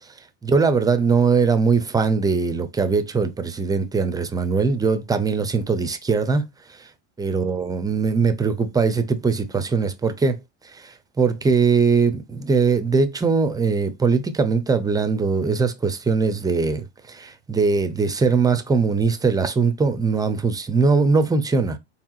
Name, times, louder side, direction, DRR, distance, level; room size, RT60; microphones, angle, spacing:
voice 1, 0.4-6.5 6.8-6.9 7.2-10.4 10.7-21.8, right 4 dB, 10° right, 0.5 m, -21 dB
4.6 x 3.4 x 2.4 m
supercardioid pair, 115°, 35 cm